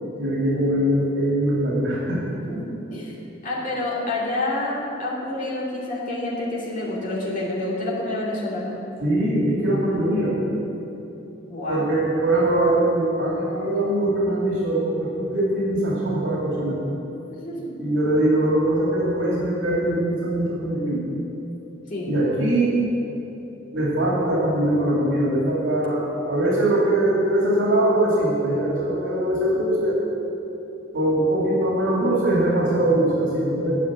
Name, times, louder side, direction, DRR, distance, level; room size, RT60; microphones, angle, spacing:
voice 1, 0.0-2.2 9.0-10.4 11.7-16.8 17.8-21.0 22.1-22.7 23.7-30.0 30.9-33.8, right 1 dB, 80° right, -5 dB, 2.5 m, -22 dB
voice 2, 2.3-8.8 11.5-11.9 17.3-17.9 21.9-22.1, left 2 dB, 45° left, -6 dB, 2.7 m, -28 dB
10.0 x 6.8 x 8.6 m, 3.0 s
head